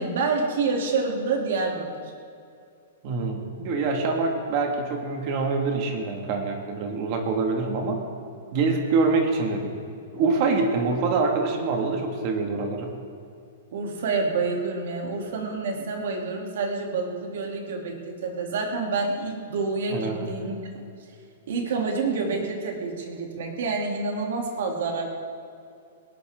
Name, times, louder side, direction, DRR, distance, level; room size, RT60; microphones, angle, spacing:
voice 1, 0.0-1.9 13.7-20.6 21.5-25.1, right 4 dB, 55° right, 0 dB, 3.0 m, -28 dB
voice 2, 3.0-8.0 8.5-9.7 10.1-12.9 19.9-20.3, right 4 dB, 30° right, 3 dB, 2.0 m, -25 dB
20.5 x 18.5 x 3.8 m, 2.4 s
hypercardioid pair, 180°, 0 cm